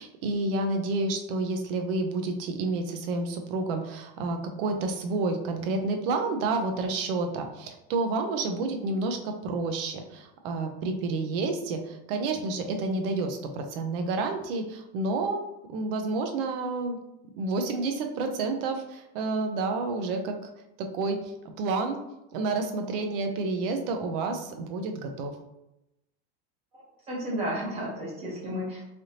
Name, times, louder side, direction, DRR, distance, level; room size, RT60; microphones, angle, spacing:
voice 1, 0.0-15.4 15.7-17.0 17.3-20.5 20.8-22.0 22.3-25.3, right 3 dB, 55° right, 5 dB, 0.6 m, -29 dB
voice 2, 26.7-28.8, equal, 20° right, -4 dB, 0.7 m, -33 dB
3.3 x 2.6 x 2.8 m, 0.89 s
supercardioid pair, 175°, 33 cm